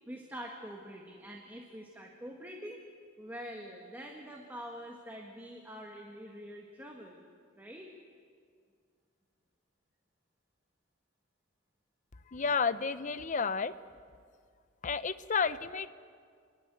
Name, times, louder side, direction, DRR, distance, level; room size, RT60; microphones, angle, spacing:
voice 1, 0.1-2.8 3.2-7.2 7.6-7.9, equal, 10° right, 0 dB, 1.6 m, -45 dB
voice 2, 12.3-13.7 14.8-15.9, left 5 dB, 40° left, 13 dB, 0.7 m, -31 dB
29.0 x 11.5 x 9.2 m, 2.1 s
head